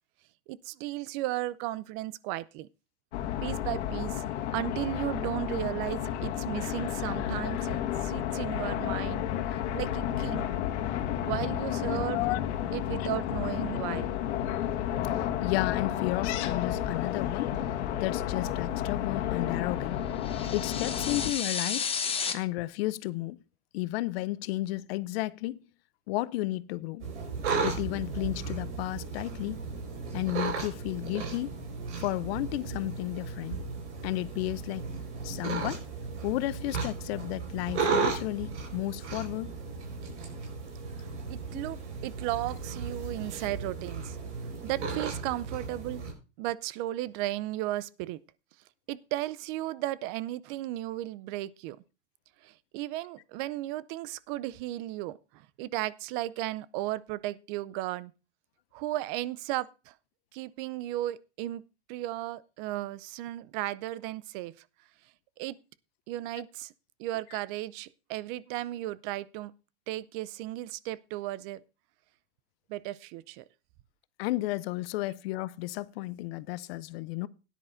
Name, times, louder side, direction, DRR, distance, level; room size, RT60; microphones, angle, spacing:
voice 1, 0.5-2.7 3.4-4.2 4.5-10.5 11.2-12.3 12.7-14.1 41.3-44.2 44.6-46.0 46.4-48.2 48.9-51.8 52.4-58.1 58.7-59.9 60.3-61.6 61.9-64.5 65.4-65.6 66.1-66.7 67.0-69.5 69.9-71.6 72.7-73.4, right 15 dB, 50° right, 0.5 m, -35 dB
sound 1, 3.1-21.3, left 11 dB, 75° left, 1.5 m, -31 dB
voice 2, 11.9-12.4 13.0-13.1 15.1-17.5 17.9-20.0 20.5-21.9 22.3-23.4 23.7-25.6 26.1-27.0 27.6-29.6 30.1-31.5 31.9-33.6 34.0-34.9 35.2-35.8 36.2-39.5 41.5-41.6 74.2-77.3, left 18 dB, 60° left, 0.6 m, -33 dB
sound 2, 20.2-22.3, left 6 dB, 15° left, 1.0 m, -32 dB
sound 3, 27.0-46.1, right 4 dB, 85° right, 4.8 m, -35 dB
17.0 x 10.0 x 2.6 m
supercardioid pair, 130°, 34 cm